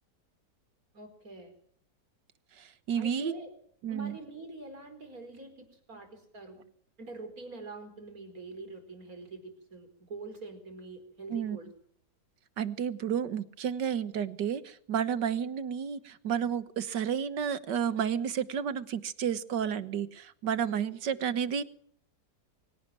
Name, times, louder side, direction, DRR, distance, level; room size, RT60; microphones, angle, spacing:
voice 1, 0.9-1.5 3.0-3.5 3.9-6.6 7.0-11.7 21.1-21.2, right 3 dB, 55° right, 7 dB, 5.2 m, -45 dB
voice 2, 2.6-3.3 3.8-4.2 11.3-11.6 12.6-21.6, right 8 dB, 85° right, 14 dB, 1.9 m, -31 dB
24.0 x 17.0 x 9.0 m, 0.62 s
omnidirectional pair, 1.8 m